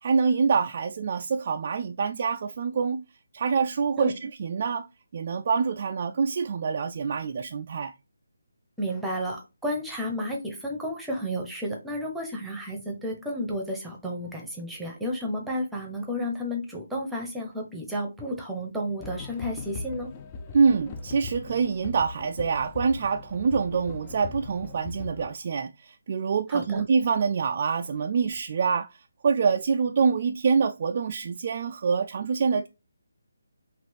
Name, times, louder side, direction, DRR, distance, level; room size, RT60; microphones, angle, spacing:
voice 1, 0.0-3.0 3.3-4.9 5.1-7.9 20.5-32.7, right 5 dB, 40° right, 0.3 m, -26 dB
voice 2, 8.8-20.1 26.5-26.8, equal, 5° right, 0.9 m, -32 dB
sound 1, 19.0-25.3, left 4 dB, 25° left, 0.4 m, -40 dB
5.9 x 2.5 x 3.3 m
figure-of-eight pair, 150°, 0 cm